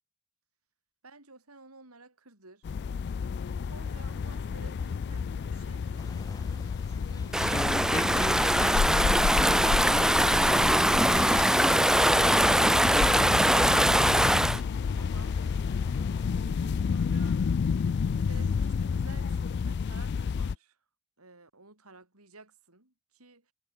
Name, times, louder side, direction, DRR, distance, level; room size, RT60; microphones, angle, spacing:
voice 1, 1.0-2.7 3.7-7.6 14.9-15.4 15.8-17.4 18.2-20.8 21.2-23.5, right 3 dB, 90° right, 6.7 m, -53 dB
sound 1, 2.6-20.5, left 6 dB, 50° left, 0.3 m, -30 dB
sound 2, 6.0-16.3, left 1 dB, 15° left, 4.8 m, -40 dB
Stream / Ocean, 7.3-14.6, right 1 dB, 5° right, 0.6 m, -22 dB
head